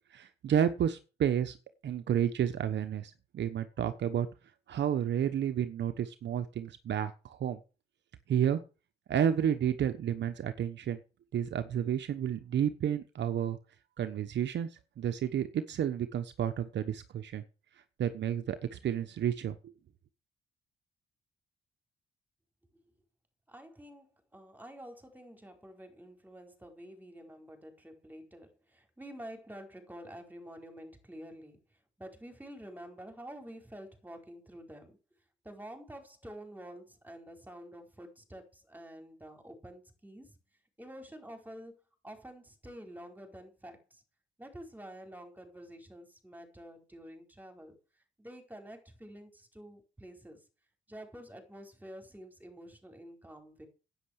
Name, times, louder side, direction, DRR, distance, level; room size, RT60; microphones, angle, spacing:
voice 1, 0.1-1.6 1.8-4.3 4.7-7.6 8.3-8.6 9.1-11.0 11.3-13.6 14.0-14.7 15.0-17.4 18.0-19.6, right 9 dB, 65° right, 1.2 m, -31 dB
voice 2, 23.5-31.6 32.0-35.0 35.4-40.4 40.8-41.7 42.0-44.0 44.4-47.7 48.2-50.4 50.9-53.7, equal, 10° right, 4.6 m, -49 dB
10.5 x 9.1 x 6.6 m
cardioid pair, 90°, 20 cm